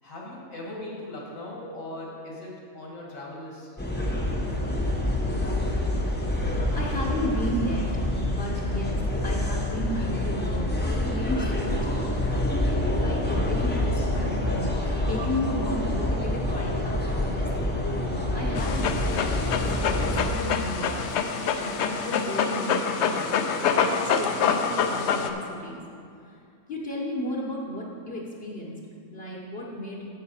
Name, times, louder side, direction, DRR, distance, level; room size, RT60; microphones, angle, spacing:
voice 1, 0.0-3.8, left 1 dB, 85° left, -4 dB, 2.5 m, -39 dB
sound 1, 3.8-20.3, left 1 dB, 10° left, 0.7 m, -27 dB
voice 2, 6.3-12.3 12.9-14.6 15.0-17.8 18.3-19.4 19.8-21.1 21.5-23.4 23.7-25.8 26.3-26.4 26.7-28.8 29.1-30.1, equal, 50° left, -3 dB, 1.1 m, -34 dB
Dog, 18.5-25.3, left 6 dB, 65° left, 0.8 m, -26 dB
9.4 x 7.7 x 4.2 m, 2.4 s
omnidirectional pair, 1.4 m